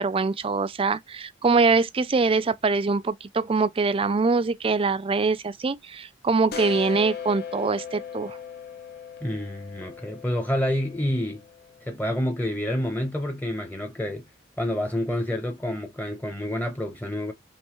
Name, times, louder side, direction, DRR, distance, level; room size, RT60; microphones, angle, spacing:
voice 1, 0.0-8.4, right 4 dB, 30° right, 0.4 m, -23 dB
sound 1, 6.5-12.0, left 7 dB, 60° left, 1.1 m, -38 dB
voice 2, 9.2-11.4 11.8-14.3 14.6-17.3, left 1 dB, 10° left, 0.9 m, -28 dB
5.4 x 3.2 x 3.0 m
head